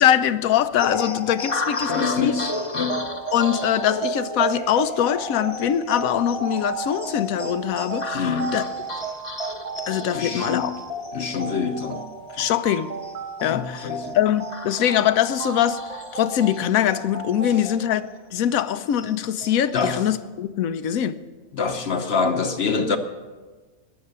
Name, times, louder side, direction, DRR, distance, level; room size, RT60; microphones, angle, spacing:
voice 1, 0.0-2.4 3.3-8.6 9.9-10.7 12.4-12.9 13.4-13.9 14.1-15.8 16.1-21.2, left 10 dB, 80° left, 1.1 m, -22 dB
sound 1, 0.8-17.7 18.0-18.1 18.5-20.1, left 1 dB, 25° left, 1.0 m, -33 dB
sound 2, 1.5-17.8, right 3 dB, 30° right, 1.1 m, -36 dB
voice 2, 1.9-3.1 8.1-8.6 10.1-10.7 11.1-12.0 12.3-12.4 13.4-14.2 19.7-20.0 21.5-23.0, left 5 dB, 55° left, 1.0 m, -26 dB
19.5 x 7.1 x 6.7 m
omnidirectional pair, 1.4 m